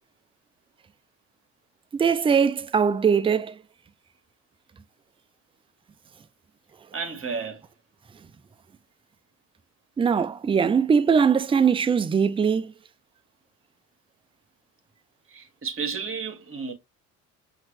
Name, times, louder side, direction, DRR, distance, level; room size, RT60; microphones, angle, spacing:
voice 1, 1.9-3.5 10.0-12.7, right 6 dB, 15° right, 0.4 m, -21 dB
voice 2, 6.9-7.6 15.3-16.7, right 5 dB, 35° right, 1.5 m, -32 dB
5.7 x 2.7 x 3.1 m
hypercardioid pair, 65°, 38 cm